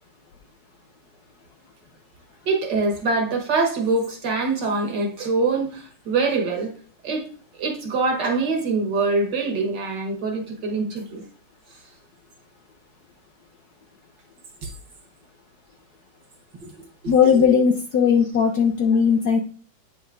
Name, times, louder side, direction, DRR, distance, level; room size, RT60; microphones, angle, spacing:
voice 1, 2.5-6.7 7.0-7.3 7.5-11.2 14.6-14.7 16.6-16.7 17.0-17.6, right 3 dB, 60° right, 1.9 m, -24 dB
voice 2, 17.1-19.4, left 7 dB, 70° left, 1.0 m, -18 dB
9.1 x 5.8 x 2.6 m
omnidirectional pair, 2.3 m